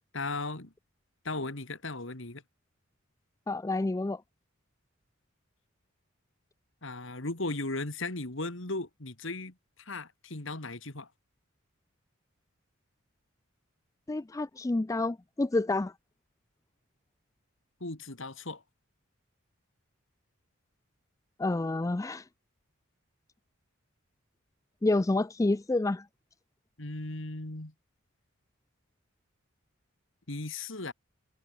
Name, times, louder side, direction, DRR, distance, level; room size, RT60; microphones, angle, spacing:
voice 1, 0.1-0.7 1.2-2.4 6.8-11.1 17.8-18.6 26.8-27.7 30.3-30.9, left 2 dB, 60° left, 2.4 m, -37 dB
voice 2, 3.5-4.2 14.1-15.9 21.4-22.3 24.8-26.1, left 2 dB, 15° left, 0.3 m, -28 dB
head